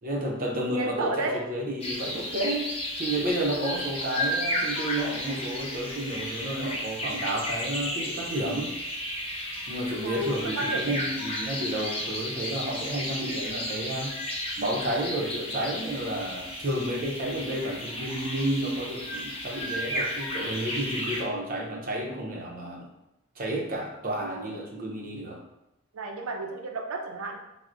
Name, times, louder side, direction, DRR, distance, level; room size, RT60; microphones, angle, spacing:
voice 1, 0.0-2.7 3.0-8.7 9.7-14.1 14.6-22.9 23.4-25.4, right 1 dB, 40° right, 0 dB, 0.5 m, -31 dB
voice 2, 0.6-1.4 10.0-11.0 24.2-24.6 25.9-27.4, right 2 dB, 90° right, 2 dB, 0.5 m, -32 dB
sound 1, 1.8-21.2, left 1 dB, 25° left, 0.6 m, -33 dB
4.5 x 2.0 x 2.5 m, 0.90 s
head